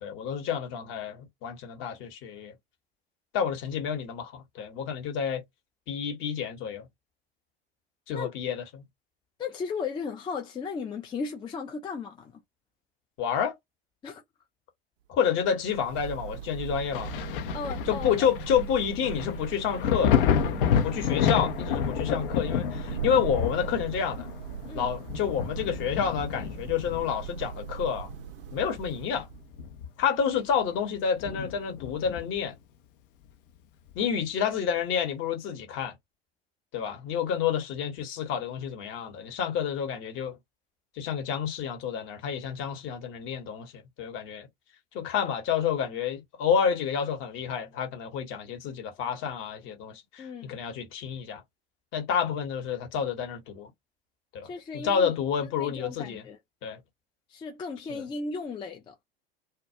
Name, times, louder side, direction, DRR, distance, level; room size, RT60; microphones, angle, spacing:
voice 1, 0.0-2.5 3.3-5.4 5.9-6.9 8.1-8.8 13.2-13.6 15.1-17.1 17.8-20.2 20.8-24.3 24.7-28.1 28.5-29.3 30.0-32.5 33.9-35.9 36.7-40.4 41.0-44.5 44.9-51.4 51.9-53.7 54.3-54.5 54.7-56.3 56.6-56.8 57.9-58.0, left 7 dB, 40° left, 1.0 m, -29 dB
voice 2, 9.4-12.3 14.0-14.2 17.5-18.1 24.7-25.0 50.2-50.6 54.4-55.1 55.6-56.4 57.3-58.9, left 5 dB, 15° left, 0.4 m, -36 dB
Thunder / Rain, 15.3-29.6, right 9 dB, 60° right, 0.5 m, -39 dB
Thunder, 16.9-28.3 28.7-30.2 30.5-30.6 31.2-32.5 33.9-34.0, left 8 dB, 60° left, 0.6 m, -30 dB
2.3 x 2.1 x 2.8 m
figure-of-eight pair, 80°, 31 cm